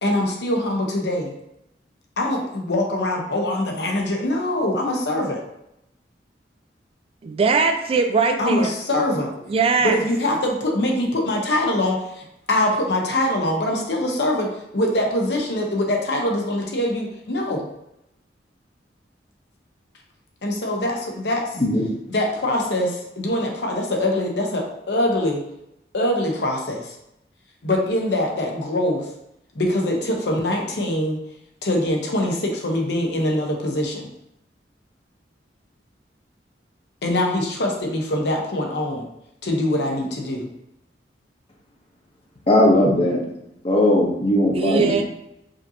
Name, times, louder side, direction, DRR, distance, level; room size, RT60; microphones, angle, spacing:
voice 1, 0.0-1.3 2.2-5.4 8.4-9.3 9.8-17.7 20.4-21.5 22.1-25.4 25.9-26.9 27.6-29.0 29.6-31.2 31.6-34.1 37.0-39.0 39.4-40.5, left 1 dB, 70° left, 0 dB, 0.8 m, -23 dB
voice 2, 7.2-8.7 9.5-10.0 44.5-45.0, right 4 dB, 35° right, 6 dB, 0.3 m, -20 dB
voice 3, 21.6-21.9 42.5-43.2 43.6-45.0, left 1 dB, 35° left, -1 dB, 0.9 m, -18 dB
5.1 x 2.8 x 2.7 m, 0.83 s
head